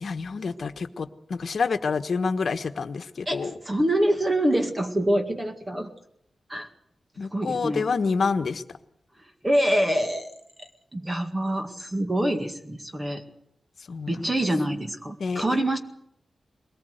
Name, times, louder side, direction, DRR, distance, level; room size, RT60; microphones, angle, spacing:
voice 1, 0.0-3.5 7.2-8.6 13.9-14.2 15.2-15.6, left 5 dB, 60° left, 9 dB, 1.3 m, -28 dB
voice 2, 3.3-5.9 6.5-6.7 7.3-7.9 9.4-10.3 10.6-13.2 14.1-15.8, right 1 dB, 20° right, 5 dB, 2.0 m, -25 dB
22.5 x 19.0 x 8.1 m, 0.72 s
wide cardioid pair, 115°, 0 cm